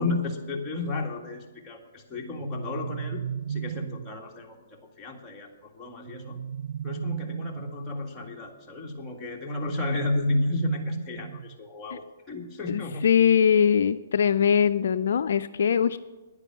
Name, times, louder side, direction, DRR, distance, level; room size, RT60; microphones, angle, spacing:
voice 1, 0.0-3.2 3.5-5.5 5.7-6.4 6.8-13.0, left 2 dB, 15° left, -1 dB, 1.9 m, -32 dB
sound 1, 2.3-4.2 6.0-7.9 9.7-11.7, right 8 dB, 65° right, 0.3 m, -35 dB
voice 2, 12.7-16.0, left 7 dB, 65° left, 12 dB, 0.4 m, -22 dB
10.0 x 9.8 x 7.4 m, 1.2 s
hypercardioid pair, 135°, 0 cm